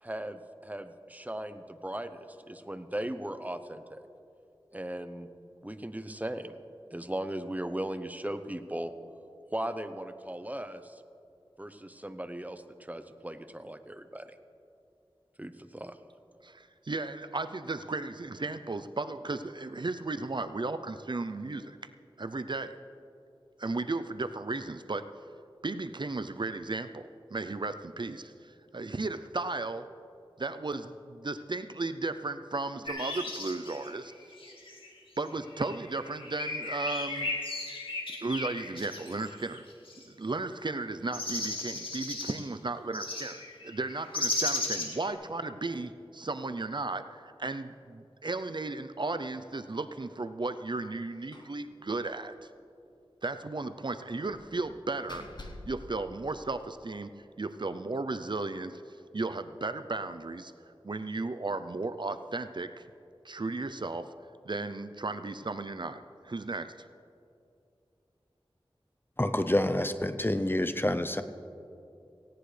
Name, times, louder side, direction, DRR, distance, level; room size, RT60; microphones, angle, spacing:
voice 1, 0.0-4.0 4.7-5.3 5.6-6.6 6.9-8.9 9.5-11.0 11.6-14.4 15.4-16.0, right 1 dB, 15° right, 9 dB, 0.8 m, -38 dB
voice 2, 16.4-21.8 22.2-22.7 23.6-25.1 25.6-29.9 30.4-34.1 35.2-37.3 38.2-39.6 40.1-52.5 53.2-55.3 55.6-58.8 59.1-62.8 63.2-64.1 64.4-66.7, right 3 dB, 55° right, 10 dB, 0.5 m, -35 dB
sound 1, 32.9-34.9 35.4-40.0 41.1-42.4 42.9-45.1, left 2 dB, 65° left, 2.3 m, -36 dB
Slam, 51.3-51.6 51.9-52.0 52.4-52.5 54.3-56.9, left 2 dB, 50° left, 1.3 m, -48 dB
voice 3, 69.2-71.2, left 1 dB, 20° left, 10 dB, 0.7 m, -27 dB
18.0 x 16.5 x 3.3 m, 2.6 s
wide cardioid pair, 50°, 10 cm